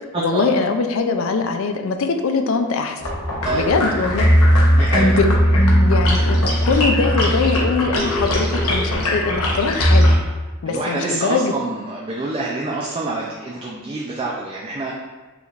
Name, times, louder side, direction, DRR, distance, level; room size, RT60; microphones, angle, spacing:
voice 1, 0.2-3.0 3.5-4.3 4.9-5.3 5.5-10.1 10.6-11.5, left 4 dB, 65° left, 7 dB, 0.4 m, -22 dB
sound 1, 3.0-10.2, equal, 85° left, 0.9 m, -17 dB
voice 2, 3.4-4.0 4.7-5.2 10.7-14.9, right 2 dB, 25° right, -3 dB, 0.4 m, -26 dB
5.0 x 3.2 x 2.4 m, 1.3 s
head